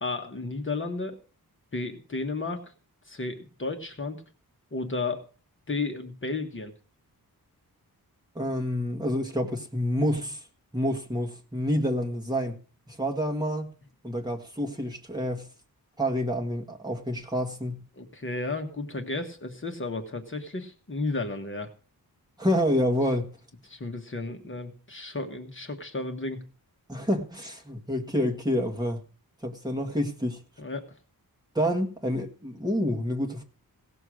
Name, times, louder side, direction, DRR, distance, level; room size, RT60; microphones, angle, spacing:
voice 1, 0.0-1.2 1.7-2.6 3.1-4.2 4.7-5.2 5.7-6.7 18.0-21.7 23.6-26.4 30.6-30.8, left 3 dB, 30° left, 4 dB, 1.4 m, -33 dB
voice 2, 8.4-10.4 10.7-12.6 12.9-13.7 14.0-15.5 16.0-17.8 22.4-23.3 26.9-29.0 29.4-30.4 31.6-33.4, equal, 10° right, 2 dB, 2.0 m, -28 dB
17.0 x 6.8 x 6.3 m, 0.37 s
wide cardioid pair, 170°, 37 cm